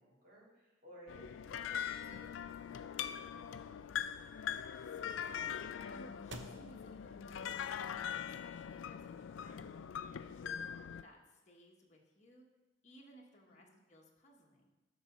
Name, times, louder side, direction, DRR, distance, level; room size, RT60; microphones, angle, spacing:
voice 1, 0.0-3.7 13.4-13.8, equal, 50° right, -5 dB, 3.2 m, -60 dB
sound 1, 1.1-11.0, left 8 dB, 75° left, 0.3 m, -42 dB
sound 2, 1.3-8.3, right 3 dB, 65° right, 0.8 m, -59 dB
voice 2, 4.8-7.7 8.2-12.5 12.8-14.7, equal, 40° left, -2 dB, 1.2 m, -61 dB
11.5 x 4.1 x 6.0 m, 1.1 s
head